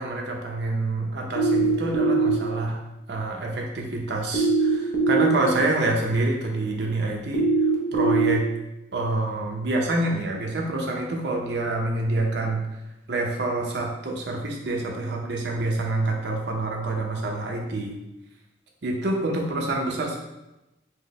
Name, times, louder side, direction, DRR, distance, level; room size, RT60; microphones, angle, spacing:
voice 1, 0.0-2.8 3.1-7.4 7.9-8.4 8.9-12.6 13.1-18.0 18.8-20.2, right 2 dB, 80° right, 0 dB, 0.7 m, -27 dB
sound 1, 1.4-2.3 4.3-5.3 7.3-8.3, right 3 dB, 75° left, 0.6 m, -21 dB
4.6 x 2.1 x 3.0 m, 0.96 s
head